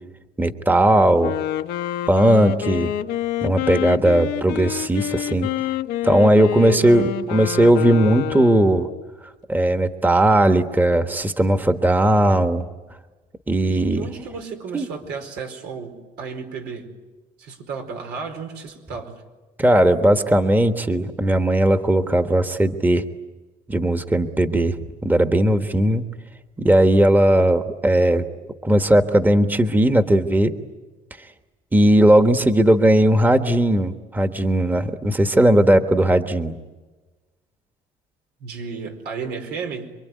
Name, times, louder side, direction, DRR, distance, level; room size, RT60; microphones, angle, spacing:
voice 1, 0.4-1.3 2.1-2.9 3.4-5.5 6.0-8.9 9.5-12.7 13.5-14.1 14.7-14.8 19.6-23.0 23.7-24.7 25.0-26.0 26.6-28.2 28.6-30.5 31.7-36.6, right 1 dB, 10° right, 8 dB, 1.3 m, -17 dB
Wind instrument woodwind instrument, 1.2-9.1, left 12 dB, 90° left, 1.2 m, -27 dB
voice 2, 13.7-16.9 17.4-19.2 38.4-40.0, right 5 dB, 85° right, 4 dB, 4.7 m, -33 dB
27.0 x 23.5 x 9.4 m, 1.2 s
cardioid pair, 110°, 17 cm